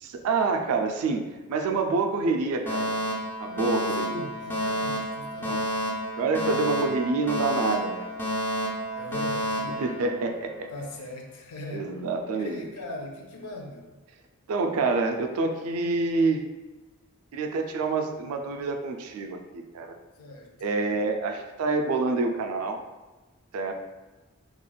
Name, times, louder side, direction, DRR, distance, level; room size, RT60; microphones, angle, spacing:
voice 1, 0.0-3.0 3.4-4.3 5.5-5.7 6.2-8.1 9.8-10.7 11.7-12.7 14.5-16.4 17.3-19.9 20.6-22.8 23.5-23.7, right 3 dB, 75° right, 5 dB, 0.3 m, -27 dB
Alarm, 2.7-10.7, equal, 10° left, 0.4 m, -30 dB
voice 2, 3.9-5.8 8.9-9.8 10.7-11.9 12.3-13.9 20.2-20.5, left 2 dB, 80° left, 1 dB, 0.5 m, -40 dB
3.0 x 2.4 x 2.2 m, 1.2 s
head